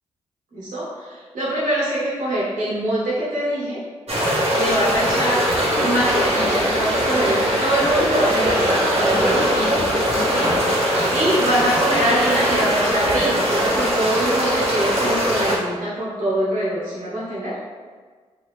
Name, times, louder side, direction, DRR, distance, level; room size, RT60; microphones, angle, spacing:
voice 1, 0.5-3.8 4.5-5.4 5.8-9.8 10.4-10.8 11.1-17.6, right 1 dB, 80° right, -8 dB, 1.3 m, -24 dB
sound 1, 4.1-15.6, equal, 50° right, 1.1 m, -20 dB
3.7 x 2.4 x 3.1 m, 1.5 s
supercardioid pair, 45°, 13 cm